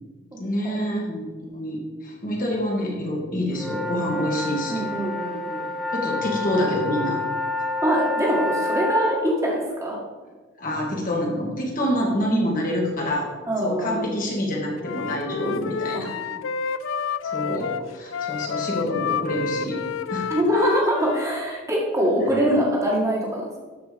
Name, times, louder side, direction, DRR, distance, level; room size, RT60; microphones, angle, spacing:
voice 1, 0.4-4.8 5.9-7.2 7.6-7.7 10.6-13.3 13.6-16.1 17.3-19.8 20.1-20.3, equal, 40° left, -2 dB, 1.9 m, -26 dB
sound 1, 3.5-9.2, left 2 dB, ahead, 0.9 m, -28 dB
voice 2, 4.7-5.7 7.8-10.0 13.5-14.2 15.4-15.5 15.9-16.2 20.3-23.6, equal, 15° right, -3 dB, 1.8 m, -24 dB
Wind instrument woodwind instrument, 14.8-21.4, left 6 dB, 70° left, 0.4 m, -29 dB
12.5 x 4.6 x 5.1 m, 1.3 s
head